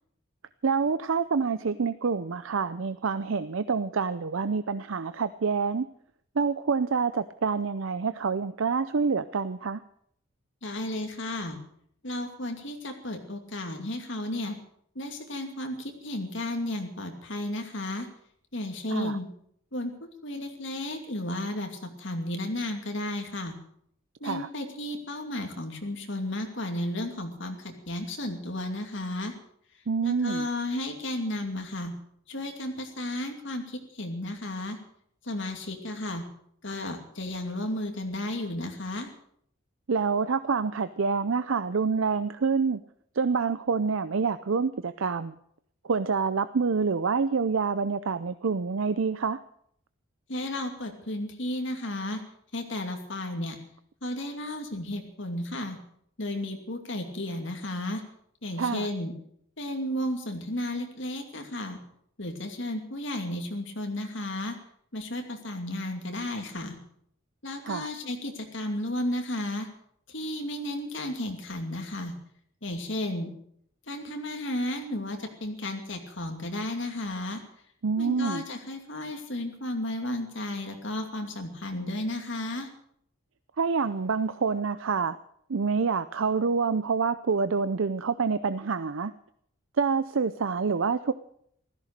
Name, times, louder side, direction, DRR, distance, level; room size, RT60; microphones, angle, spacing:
voice 1, 0.6-5.9 6.4-9.8 18.9-19.2 24.2-24.5 29.9-30.5 39.9-42.8 43.2-45.4 45.8-49.4 58.6-58.9 67.7-67.9 77.8-78.4 83.6-85.2 85.5-89.1 89.8-91.1, right 5 dB, 70° right, 13 dB, 0.5 m, -27 dB
voice 2, 10.6-11.6 12.0-14.6 14.9-18.1 18.5-19.3 19.7-23.6 24.2-29.3 30.0-31.9 32.3-34.8 35.2-36.2 36.6-39.1 50.3-52.2 52.5-53.6 54.0-55.8 56.2-58.0 58.4-59.1 59.6-61.8 62.2-64.6 64.9-66.8 67.4-69.7 70.1-72.1 72.6-73.3 73.9-77.4 78.0-82.7, left 1 dB, 60° left, 4 dB, 2.5 m, -33 dB
15.5 x 14.0 x 6.6 m, 0.68 s
head